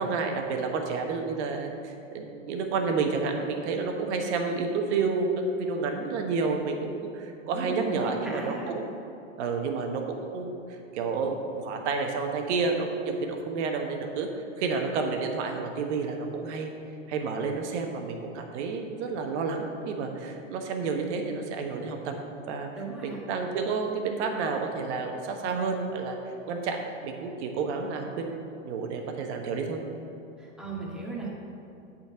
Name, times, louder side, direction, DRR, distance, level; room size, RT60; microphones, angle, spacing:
voice 1, 0.0-9.0 9.4-10.6 10.9-14.3 14.6-16.7 17.1-22.1 22.5-22.7 23.0-26.2 26.5-29.8, right 4 dB, 55° right, 3 dB, 1.3 m, -30 dB
voice 2, 7.5-8.7 22.7-23.2 30.4-31.3, right 3 dB, ahead, -5 dB, 1.9 m, -36 dB
8.9 x 4.5 x 6.7 m, 2.6 s
hypercardioid pair, 110°, 40 cm